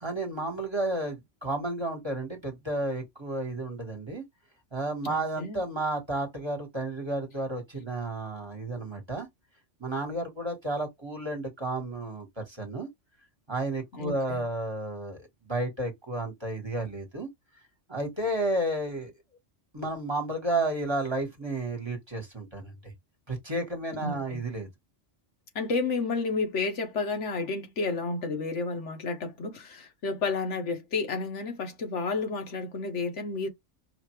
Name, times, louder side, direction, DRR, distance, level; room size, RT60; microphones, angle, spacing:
voice 1, 0.0-4.2 4.7-9.3 9.8-12.9 13.5-17.3 17.9-19.1 19.7-22.9 23.3-24.7, right 2 dB, 20° right, 1.4 m, -32 dB
voice 2, 5.0-5.6 13.9-14.4 24.0-24.4 25.5-33.5, left 4 dB, 70° left, 1.3 m, -31 dB
5.0 x 2.6 x 3.1 m
omnidirectional pair, 1.3 m